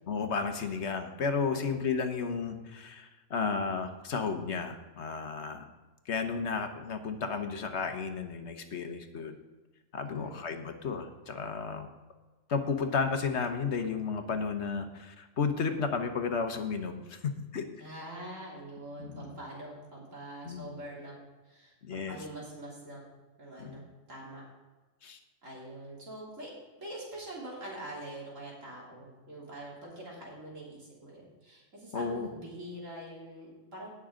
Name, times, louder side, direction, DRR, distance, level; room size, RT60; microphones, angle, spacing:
voice 1, 0.1-5.7 6.1-9.3 9.9-11.9 12.5-17.6 19.0-19.3 20.4-20.7 21.8-22.2 23.6-23.8 25.0-25.2 31.9-32.3, left 5 dB, 65° left, 7 dB, 1.3 m, -33 dB
voice 2, 10.1-10.4 17.8-21.2 21.4-23.0 23.4-24.4 25.4-26.5 26.8-33.9, right 1 dB, 80° right, -4 dB, 3.6 m, -44 dB
18.5 x 6.3 x 3.8 m, 1.2 s
omnidirectional pair, 1.3 m